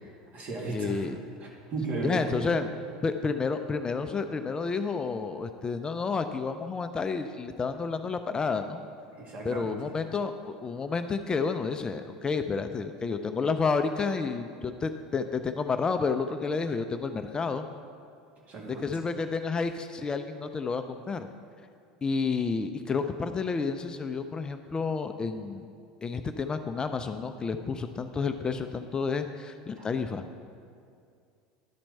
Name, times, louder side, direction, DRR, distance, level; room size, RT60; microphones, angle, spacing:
voice 1, 0.0-1.0 1.4-2.4 9.1-9.8 18.4-18.9 29.8-29.9, right 3 dB, 45° right, -2 dB, 2.2 m, -35 dB
voice 2, 0.7-1.2 2.0-2.7 3.0-8.8 9.4-17.7 18.7-21.3 22.0-25.7 26.0-30.2, left 4 dB, 25° left, 8 dB, 0.4 m, -30 dB
11.0 x 4.4 x 5.4 m, 2.3 s
hypercardioid pair, 90°, 3 cm